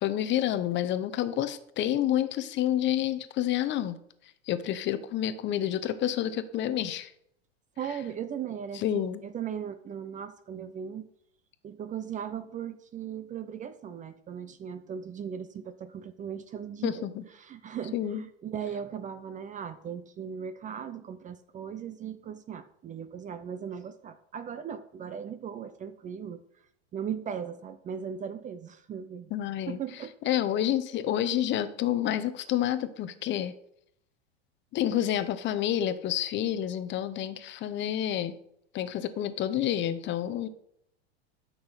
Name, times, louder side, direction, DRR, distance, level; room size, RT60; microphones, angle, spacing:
voice 1, 0.0-4.0 4.5-7.1 8.7-9.2 16.8-17.2 17.9-18.2 29.3-29.8 30.2-33.5 34.7-38.3 38.7-40.5, left 11 dB, 35° left, 12 dB, 0.8 m, -29 dB
voice 2, 7.8-11.1 11.6-17.1 17.4-26.4 26.9-29.3 29.7-30.1, right 8 dB, 25° right, 12 dB, 0.6 m, -38 dB
12.0 x 6.1 x 4.1 m, 0.71 s
supercardioid pair, 120°, 32 cm